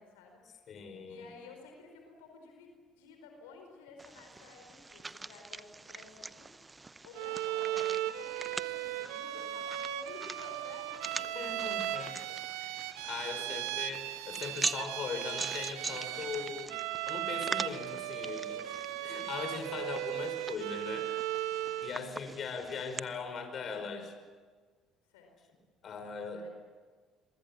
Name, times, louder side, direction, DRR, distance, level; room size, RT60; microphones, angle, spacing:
voice 1, 0.0-6.5 6.8-11.7 13.4-13.8 16.3-16.8 19.0-19.3 21.7-22.2 25.1-25.6 26.3-26.5, left 4 dB, 80° left, 3 dB, 4.7 m, -54 dB
voice 2, 0.7-1.3 11.3-12.1 12.6-16.7 17.1-18.7 19.0-21.1 21.8-24.1 25.8-26.5, left 5 dB, 50° left, 7 dB, 5.3 m, -40 dB
sound 1, 4.0-23.0, right 3 dB, 20° right, 0.8 m, -43 dB
Bowed string instrument, 7.1-22.0, right 13 dB, 75° right, 1.2 m, -37 dB
28.0 x 23.0 x 7.4 m, 1.5 s
hypercardioid pair, 60°, 0 cm